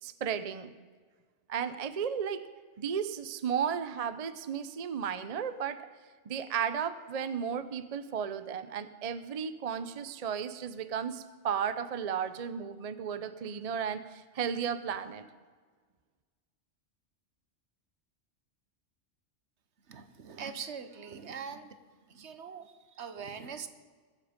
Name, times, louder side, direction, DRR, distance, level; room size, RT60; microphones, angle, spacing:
voice 1, 0.0-0.8 1.5-2.5 2.8-5.8 6.3-15.3, right 7 dB, 45° right, 12 dB, 0.6 m, -34 dB
voice 2, 19.9-21.8 22.1-23.7, right 6 dB, 65° right, 10 dB, 1.2 m, -42 dB
21.5 x 7.4 x 5.1 m, 1.5 s
omnidirectional pair, 1.3 m